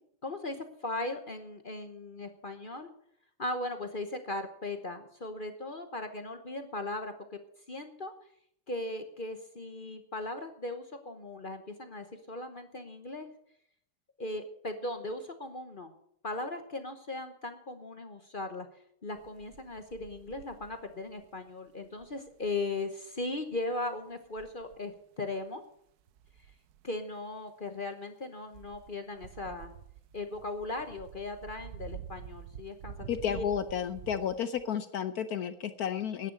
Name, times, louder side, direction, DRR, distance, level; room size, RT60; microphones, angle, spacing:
voice 1, 0.2-2.9 3.4-7.4 7.7-8.1 8.7-13.3 14.2-15.9 16.2-18.7 19.0-25.6 26.8-29.7 30.1-33.4, left 2 dB, 40° left, 7 dB, 0.8 m, -38 dB
sound 1, 19.1-21.4 21.8-22.6 23.7-23.9 24.3-24.9 26.1-26.9 28.5-34.6, right 9 dB, 65° right, 1.0 m, -48 dB
voice 2, 33.1-36.3, left 8 dB, 65° left, 12 dB, 1.0 m, -32 dB
10.0 x 9.7 x 8.3 m, 0.69 s
omnidirectional pair, 2.2 m